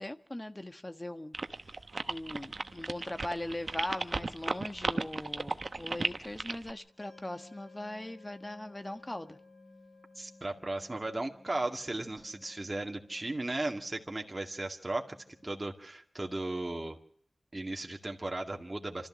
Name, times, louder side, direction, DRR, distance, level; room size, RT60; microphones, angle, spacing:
voice 1, 0.0-1.7 2.1-9.4, left 1 dB, 25° left, 1.4 m, -40 dB
sound 1, 1.3-6.7, right 3 dB, 55° right, 1.0 m, -34 dB
sound 2, 2.6-15.7, left 2 dB, 90° left, 7.1 m, -59 dB
voice 2, 10.2-15.2 15.4-17.0 17.5-19.1, right 2 dB, 35° right, 2.2 m, -36 dB
26.5 x 13.5 x 7.4 m
cardioid pair, 45°, 0 cm